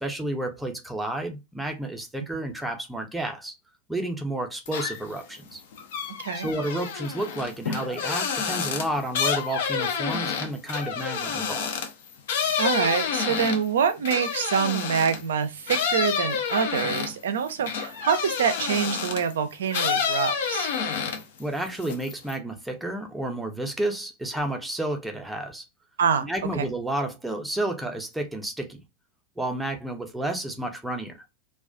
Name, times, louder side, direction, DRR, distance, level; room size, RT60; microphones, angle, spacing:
voice 1, 0.0-3.6 3.9-5.6 6.3-11.7 21.4-25.6 26.2-28.8 29.4-31.2, right 1 dB, 5° right, 0.5 m, -31 dB
sound 1, 4.7-5.2 5.5-15.3 15.7-19.3 19.7-21.4 21.7-22.4, left 6 dB, 55° left, 0.4 m, -29 dB
voice 2, 6.2-6.5 12.6-20.7 26.0-26.3 26.6-26.7, right 7 dB, 60° right, 0.4 m, -25 dB
2.3 x 2.2 x 2.4 m
figure-of-eight pair, 90°, 0 cm